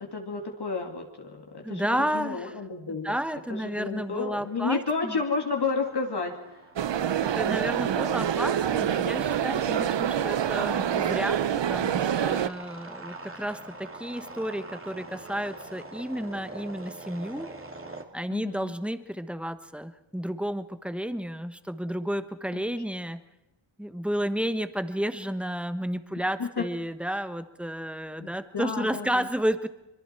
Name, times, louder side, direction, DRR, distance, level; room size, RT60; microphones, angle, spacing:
voice 1, 0.0-3.2 3.5-6.3 9.6-9.9 18.3-18.7 22.5-22.6 26.4-26.7 28.2-29.3, left 4 dB, 55° left, 1 dB, 2.6 m, -31 dB
voice 2, 1.6-2.5 3.0-5.2 7.2-17.5 18.1-23.2 23.8-29.7, equal, ahead, 11 dB, 1.1 m, -32 dB
sound 1, 3.9-18.0, right 2 dB, 25° right, 2.3 m, -46 dB
sound 2, 6.8-12.5, right 9 dB, 60° right, 0.8 m, -26 dB
26.0 x 23.0 x 4.5 m, 0.97 s
wide cardioid pair, 90°, 49 cm